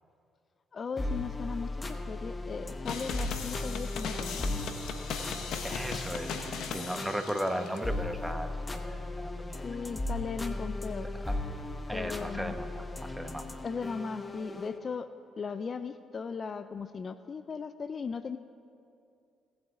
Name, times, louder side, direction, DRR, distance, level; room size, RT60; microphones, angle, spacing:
voice 1, 0.7-4.7 9.6-11.1 11.9-12.6 13.6-15.1 15.4-18.4, left 5 dB, 45° left, 12 dB, 0.4 m, -37 dB
sound 1, 1.0-14.8, left 2 dB, 25° left, 0.9 m, -37 dB
sound 2, 2.9-7.8, left 5 dB, 70° left, 1.0 m, -38 dB
voice 2, 5.6-6.4 6.7-9.6 9.9-10.0 11.2-11.4 11.9-13.6, equal, 5° right, 7 dB, 1.0 m, -36 dB
18.0 x 8.0 x 3.8 m, 2.5 s
supercardioid pair, 55°, 0 cm